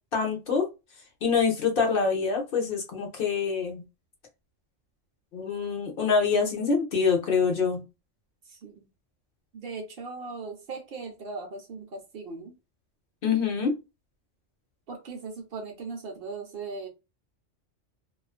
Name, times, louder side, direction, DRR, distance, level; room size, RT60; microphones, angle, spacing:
voice 1, 0.1-0.7 1.2-3.8 5.3-7.8 13.2-13.8, left 5 dB, 55° left, 0.7 m, -25 dB
voice 2, 8.5-8.9 9.5-12.5 14.9-16.9, right 4 dB, 60° right, 0.8 m, -38 dB
2.4 x 2.3 x 2.3 m
omnidirectional pair, 1.2 m